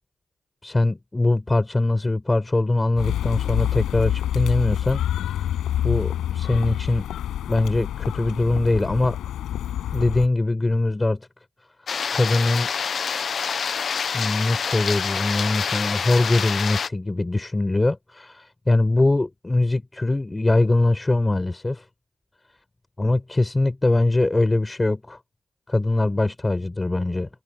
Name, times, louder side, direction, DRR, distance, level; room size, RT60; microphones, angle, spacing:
voice 1, 0.6-5.0 5.8-7.1 7.5-9.2 9.9-11.3 12.1-12.7 14.1-21.8 23.0-25.2 25.7-27.3, left 2 dB, 25° left, 6.3 m, -22 dB
sound 1, 3.0-10.3, left 11 dB, 85° left, 6.5 m, -27 dB
sound 2, 11.9-16.9, left 6 dB, 60° left, 0.9 m, -27 dB
supercardioid pair, 50°, 0 cm